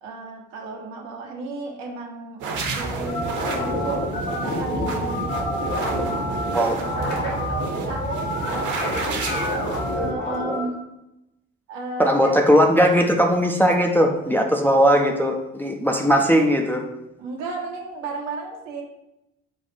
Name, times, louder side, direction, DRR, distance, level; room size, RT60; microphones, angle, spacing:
voice 1, 0.0-5.3 5.7-8.7 9.0-9.4 9.9-10.8 11.7-12.4 17.2-18.8, right 3 dB, 65° right, 0 dB, 1.0 m, -34 dB
sound 1, 2.4-10.1, right 3 dB, 50° right, 1.0 m, -29 dB
sound 2, 3.1-10.7, left 1 dB, 65° left, 1.3 m, -28 dB
voice 2, 12.0-16.8, equal, 5° left, 2 dB, 0.5 m, -18 dB
4.9 x 2.5 x 4.2 m, 0.90 s
figure-of-eight pair, 45°, 40 cm